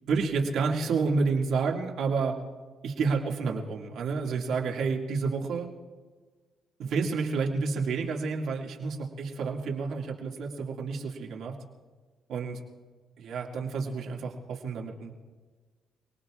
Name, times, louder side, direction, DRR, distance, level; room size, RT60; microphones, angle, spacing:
voice 1, 0.1-2.4 2.8-5.7 6.8-11.6 12.3-12.6 13.2-15.1, right 4 dB, 75° right, 0 dB, 2.2 m, -29 dB
29.0 x 19.0 x 2.5 m, 1.4 s
cardioid pair, 90°, 0 cm